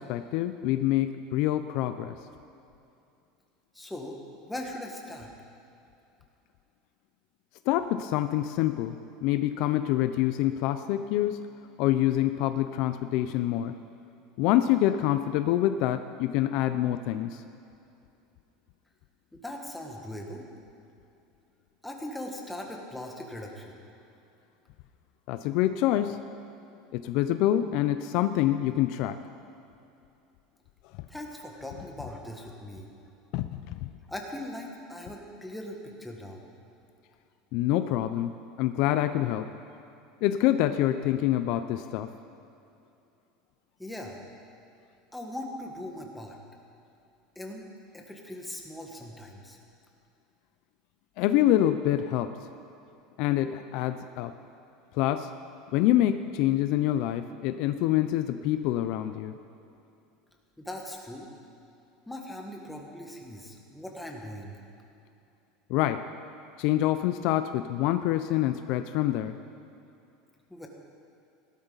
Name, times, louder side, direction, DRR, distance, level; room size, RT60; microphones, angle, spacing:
voice 1, 0.0-2.2 7.7-9.0 9.2-11.5 11.8-13.7 14.4-17.4 25.3-26.2 26.9-29.2 33.3-33.9 37.5-39.5 40.2-42.1 51.2-52.4 53.2-54.3 54.9-55.3 55.7-59.4 65.7-66.0 66.6-69.4, left 13 dB, 60° left, 10 dB, 0.5 m, -26 dB
voice 2, 3.7-4.2 4.4-5.3 19.3-20.4 21.8-23.8 31.1-32.9 34.1-36.4 43.8-44.2 45.1-46.4 47.3-47.7 47.9-49.6 60.6-61.3 62.1-64.6 70.5-70.7, left 1 dB, 5° left, 0 dB, 1.5 m, -40 dB
17.0 x 12.0 x 4.0 m, 2.7 s
supercardioid pair, 145°, 0 cm